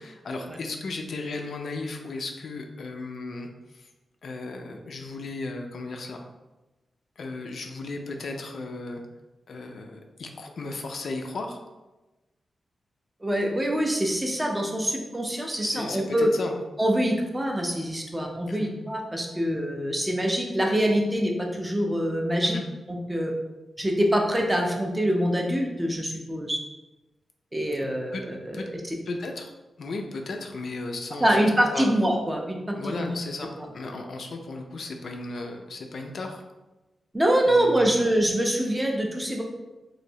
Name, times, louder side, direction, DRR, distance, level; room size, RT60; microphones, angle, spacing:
voice 1, 0.0-3.9 4.2-6.2 7.2-9.0 9.5-11.6 15.6-16.5 18.5-18.7 22.4-22.6 28.1-28.2 28.5-28.7 29.1-29.5 29.8-31.9 32.7-36.4 37.5-38.0, left 3 dB, 60° left, 3 dB, 0.3 m, -35 dB
voice 2, 13.2-16.3 16.8-22.6 22.9-23.3 23.8-26.6 27.5-28.6 31.2-33.1 37.1-39.4, equal, 10° right, 1 dB, 0.4 m, -25 dB
3.0 x 2.6 x 2.7 m, 1.1 s
wide cardioid pair, 160°, 0 cm